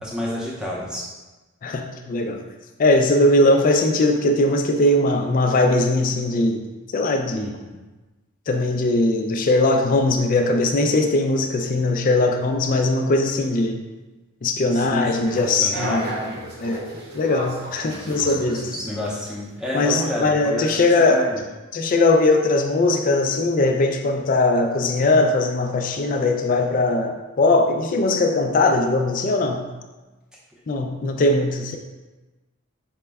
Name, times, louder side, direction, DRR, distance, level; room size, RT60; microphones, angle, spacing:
voice 1, 0.0-1.0 7.3-7.8 14.7-15.3 15.6-16.0 17.9-21.4, left 1 dB, 5° right, -5 dB, 0.6 m, -29 dB
voice 2, 1.6-2.4 2.8-6.7 6.9-7.5 8.5-13.8 14.4-16.2 16.6-16.8 17.1-18.7 19.7-21.2 21.7-29.6 30.7-31.8, left 2 dB, 40° left, 4 dB, 0.3 m, -20 dB
sound 1, 15.2-19.1, right 1 dB, 45° right, 0.7 m, -34 dB
5.0 x 2.2 x 3.4 m, 1.2 s
head